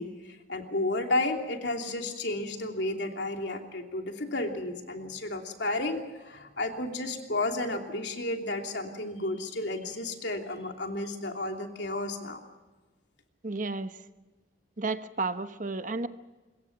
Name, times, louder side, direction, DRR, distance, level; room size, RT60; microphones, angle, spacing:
voice 1, 0.0-12.4, left 2 dB, 70° left, 3 dB, 3.0 m, -32 dB
voice 2, 13.4-14.0 14.8-16.1, right 3 dB, 45° right, 10 dB, 1.0 m, -32 dB
25.0 x 22.5 x 6.0 m, 1.2 s
head